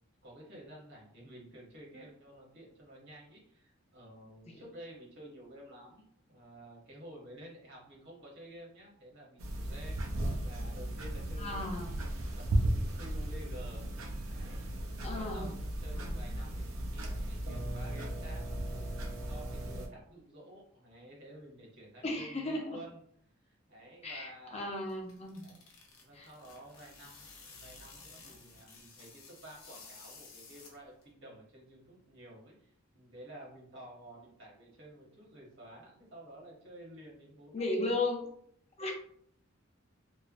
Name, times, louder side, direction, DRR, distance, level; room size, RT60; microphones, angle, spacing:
voice 1, 0.2-10.0 10.4-13.9 14.2-15.5 15.8-18.4 18.7-23.0 23.4-24.8 25.4-25.6 26.0-37.9 38.8-38.9, right 1 dB, 60° right, -3 dB, 1.1 m, -52 dB
sound 1, 9.4-19.9, right 1 dB, 85° right, 0.5 m, -36 dB
voice 2, 11.4-11.9 15.0-15.6 15.9-16.2 22.0-22.8 24.0-25.5 26.1-26.3 37.5-38.3 38.8-38.9, left 2 dB, 30° left, 1 dB, 0.6 m, -35 dB
sound 2, 24.7-31.1, left 4 dB, 80° left, 0.6 m, -54 dB
3.1 x 2.1 x 2.4 m, 0.63 s
head